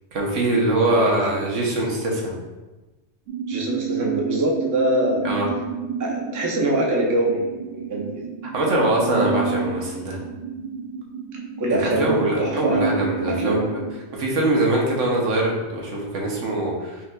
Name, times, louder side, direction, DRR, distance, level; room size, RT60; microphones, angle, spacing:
voice 1, 0.1-2.3 5.2-5.5 8.5-10.2 11.7-13.8 14.1-17.0, right 1 dB, 85° right, -2 dB, 1.2 m, -23 dB
voice 2, 0.8-1.7 3.5-5.2 6.0-8.2 11.6-12.9 13.3-13.7, right 1 dB, 30° right, -1 dB, 0.3 m, -24 dB
sound 1, 3.3-13.9, right 5 dB, 70° right, 0.9 m, -30 dB
5.7 x 2.9 x 2.2 m, 1.1 s
omnidirectional pair, 1.2 m